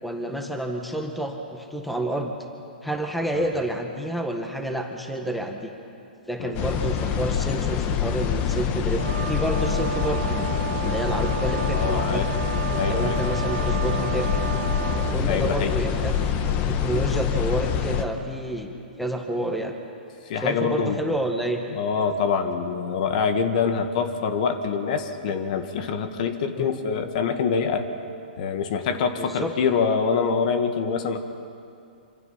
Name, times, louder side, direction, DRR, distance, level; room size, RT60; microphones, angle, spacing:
voice 1, 0.0-5.7 6.3-10.5 10.8-12.2 12.9-14.3 15.1-16.1 16.7-19.7 20.4-21.6 26.5-26.8 29.2-29.5, right 1 dB, ahead, 3 dB, 1.7 m, -29 dB
sound 1, 6.5-18.0, left 7 dB, 30° left, 1.6 m, -25 dB
sound 2, 9.0-15.2, right 8 dB, 80° right, 2.7 m, -32 dB
voice 2, 11.7-12.3 12.7-13.2 14.1-14.3 15.3-15.8 20.3-21.0 21.7-27.9 28.4-31.2, left 6 dB, 50° left, 7 dB, 1.9 m, -25 dB
26.0 x 26.0 x 5.8 m, 2.5 s
hypercardioid pair, 140°, 5 cm